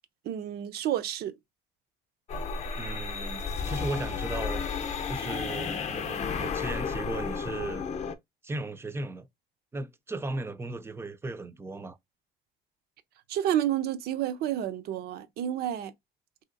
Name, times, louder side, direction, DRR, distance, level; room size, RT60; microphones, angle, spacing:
voice 1, 0.2-1.3 13.3-15.9, right 11 dB, 70° right, 0.5 m, -30 dB
sound 1, 2.3-8.1, left 6 dB, 40° left, 0.6 m, -33 dB
voice 2, 2.8-4.6 5.1-7.9 8.4-9.3 9.7-12.0, right 2 dB, 15° right, 0.4 m, -36 dB
3.1 x 2.8 x 2.5 m
cardioid pair, 110°, 17 cm